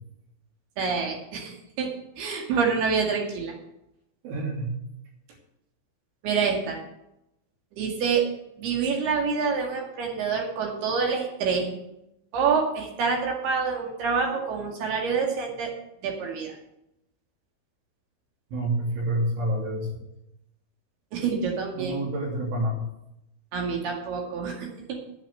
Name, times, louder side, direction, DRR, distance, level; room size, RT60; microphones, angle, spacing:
voice 1, 0.8-1.9 2.2-3.5 6.2-6.8 7.8-8.2 8.6-11.8 12.3-15.7 16.0-16.5 21.1-22.0 23.5-24.7, right 5 dB, 60° right, 1 dB, 3.8 m, -27 dB
voice 2, 4.2-4.7 18.5-19.9 21.7-22.8, right 1 dB, 85° right, -1 dB, 5.4 m, -28 dB
9.1 x 9.0 x 7.8 m, 0.85 s
omnidirectional pair, 5.4 m